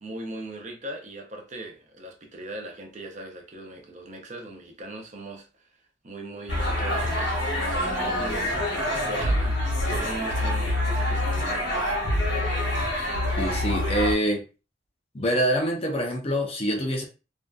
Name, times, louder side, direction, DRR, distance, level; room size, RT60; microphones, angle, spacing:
voice 1, 0.0-5.5 6.0-8.6 9.0-9.6 9.9-12.0, right 1 dB, 40° right, 0.5 m, -39 dB
sound 1, 6.5-14.1, left 1 dB, 75° left, 0.8 m, -26 dB
voice 2, 13.4-14.4 15.1-17.0, equal, 30° left, 0.5 m, -25 dB
2.5 x 2.2 x 2.3 m
head